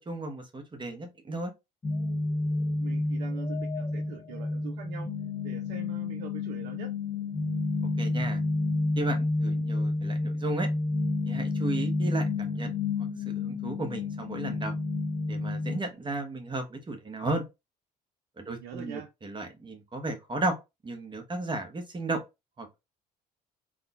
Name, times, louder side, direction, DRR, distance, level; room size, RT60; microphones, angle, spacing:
voice 1, 0.0-1.5 8.0-8.4 9.0-10.7 11.3-14.7 15.3-17.4 18.4-20.5 20.8-22.2 22.6-22.8, right 2 dB, 20° right, 1.0 m, -34 dB
sound 1, 1.8-15.8, left 3 dB, 20° left, 0.5 m, -30 dB
voice 2, 2.8-5.1 5.4-6.9 18.5-19.1, right 8 dB, 60° right, 0.5 m, -43 dB
3.6 x 2.2 x 2.3 m
figure-of-eight pair, 55°, 21 cm